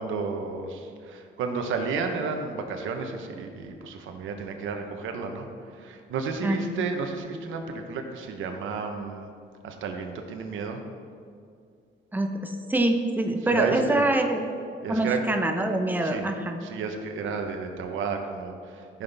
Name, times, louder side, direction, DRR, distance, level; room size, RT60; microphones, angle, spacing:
voice 1, 0.0-9.3 9.6-10.8 13.5-14.0 14.8-15.2 16.0-16.3 16.6-19.0, right 5 dB, 80° right, 5 dB, 1.0 m, -32 dB
voice 2, 12.1-14.5 14.9-16.6, right 2 dB, 10° right, 4 dB, 0.9 m, -25 dB
14.5 x 5.7 x 3.5 m, 2.3 s
cardioid pair, 90°, 20 cm